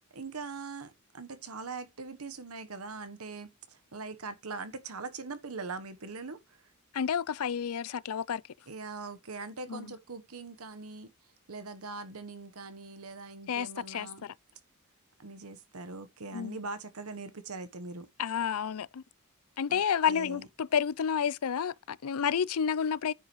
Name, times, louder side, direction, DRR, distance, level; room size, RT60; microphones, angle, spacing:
voice 1, 0.1-6.6 8.7-11.1 11.5-14.2 15.2-18.1 19.7-19.8 20.1-20.4, right 3 dB, 85° right, 1.2 m, -42 dB
voice 2, 6.9-8.4 9.7-9.9 13.5-14.3 16.3-16.6 18.2-19.0 19.6-23.1, left 7 dB, 85° left, 0.5 m, -30 dB
9.7 x 8.0 x 3.2 m
head